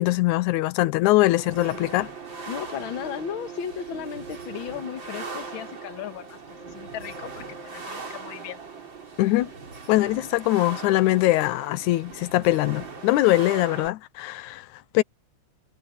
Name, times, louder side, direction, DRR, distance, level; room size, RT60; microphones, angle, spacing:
voice 1, 0.0-2.1 9.2-9.5 9.9-14.7 14.9-15.0, left 17 dB, 85° left, 2.1 m, -22 dB
sound 1, 1.4-13.9, right 4 dB, 40° right, 4.2 m, -39 dB
voice 2, 2.5-6.4 6.7-7.4 7.7-8.6, left 9 dB, 50° left, 1.8 m, -35 dB
omnidirectional pair, 3.4 m